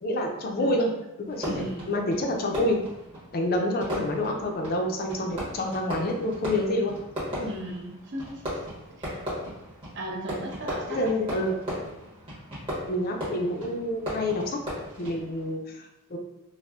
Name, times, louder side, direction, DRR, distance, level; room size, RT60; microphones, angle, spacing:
voice 1, 0.0-0.9 1.2-2.9 3.3-6.9 7.4-7.5 10.9-11.5 12.9-14.6 15.0-16.2, left 1 dB, 40° left, 2 dB, 0.4 m, -28 dB
voice 2, 0.6-0.9 1.5-1.9 7.5-8.4 9.0-9.1 9.9-11.2, right 1 dB, 50° right, -1 dB, 0.6 m, -36 dB
Fireworks, 1.3-15.5, equal, 25° right, 1.1 m, -37 dB
4.2 x 2.0 x 2.3 m, 0.94 s
head